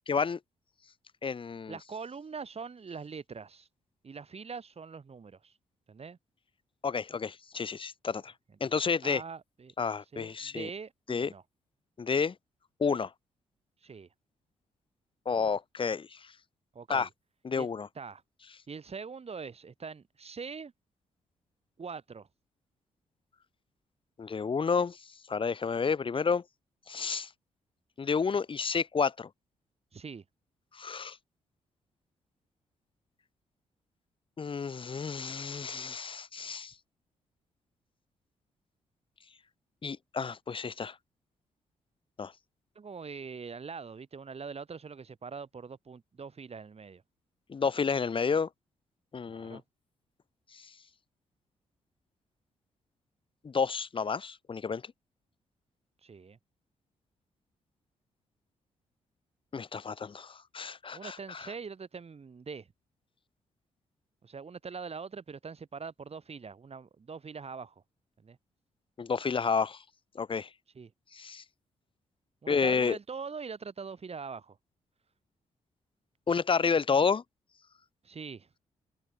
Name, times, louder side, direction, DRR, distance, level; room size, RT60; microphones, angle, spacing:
voice 1, 0.1-0.4 1.2-1.8 6.8-8.3 8.6-9.2 9.8-10.7 11.1-11.3 12.0-12.3 12.8-13.1 15.3-16.3 16.9-17.1 17.4-17.9 24.2-26.4 26.9-27.3 28.0-29.3 30.7-31.2 34.4-36.7 39.8-41.0 42.2-42.3 47.5-48.5 49.1-49.6 50.5-50.7 53.4-54.8 59.5-61.5 69.0-69.8 70.1-70.5 71.1-71.4 72.5-73.0 76.3-77.2, left 5 dB, 40° left, 0.9 m, -30 dB
voice 2, 1.7-3.7 4.0-5.5 5.9-6.2 9.0-9.7 10.1-11.4 13.8-14.1 16.7-17.1 17.6-17.7 18.0-18.2 18.7-20.7 21.8-22.3 29.9-30.2 42.8-47.0 49.3-49.6 56.0-56.4 60.9-62.7 64.2-67.7 68.2-68.4 70.7-70.9 72.4-74.6 78.0-78.5, right 5 dB, 45° right, 7.2 m, -43 dB
supercardioid pair, 50°, 14 cm